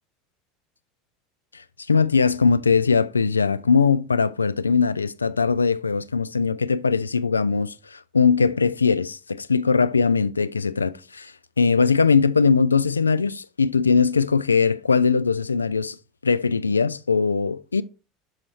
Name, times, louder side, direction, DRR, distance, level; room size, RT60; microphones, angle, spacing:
voice 1, 1.5-16.0 16.2-17.8, left 5 dB, 80° left, 0.3 m, -21 dB
6.3 x 6.1 x 4.2 m
figure-of-eight pair, 70°, 0 cm